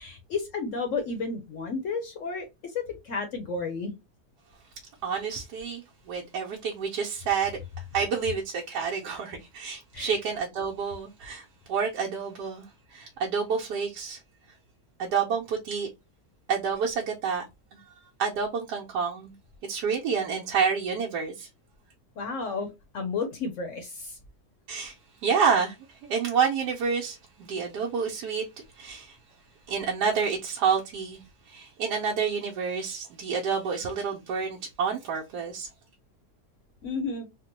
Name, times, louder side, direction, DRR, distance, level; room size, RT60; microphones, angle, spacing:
voice 1, 0.0-3.9 9.9-10.1 22.2-22.7 22.9-24.2 36.8-37.3, left 4 dB, 60° left, 0.9 m, -32 dB
voice 2, 5.0-5.8 6.1-7.6 7.9-14.2 15.0-15.9 16.5-17.4 17.7-17.8 18.2-19.3 19.7-21.5 24.7-24.9 25.2-25.7 26.0-28.4 28.8-29.2 29.7-31.2 31.5-35.7, right 6 dB, 80° right, 1.2 m, -28 dB
3.6 x 2.1 x 2.9 m
omnidirectional pair, 1.8 m